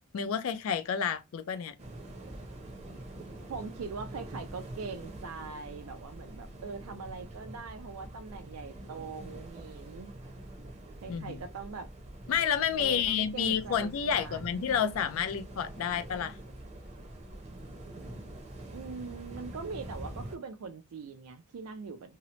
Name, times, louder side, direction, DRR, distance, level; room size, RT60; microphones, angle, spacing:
voice 1, 0.1-1.7 11.1-11.4 12.3-16.4, left 8 dB, 70° left, 0.4 m, -30 dB
sound 1, 1.8-20.4, right 1 dB, 30° right, 0.6 m, -45 dB
voice 2, 3.5-10.1 11.0-11.9 12.8-14.7 18.7-22.2, right 4 dB, 85° right, 0.4 m, -42 dB
2.8 x 2.0 x 2.8 m
head